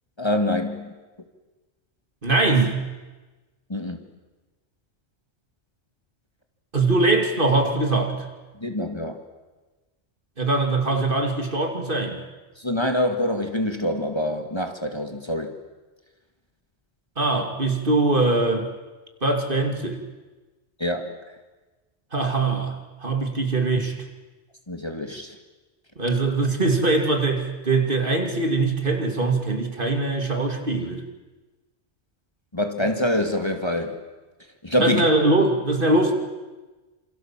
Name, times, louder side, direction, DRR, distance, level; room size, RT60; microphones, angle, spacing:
voice 1, 0.2-0.9 3.7-4.0 8.6-9.2 12.6-15.6 20.8-21.3 24.7-25.4 32.5-34.0 34.6-35.0, left 1 dB, 25° left, 5 dB, 2.2 m, -25 dB
voice 2, 2.2-2.8 6.7-8.3 10.4-12.2 17.2-18.7 19.2-20.0 22.1-24.0 26.0-31.0 34.8-36.1, right 2 dB, 45° right, 4 dB, 2.9 m, -22 dB
28.0 x 27.5 x 7.5 m, 1.2 s
omnidirectional pair, 1.2 m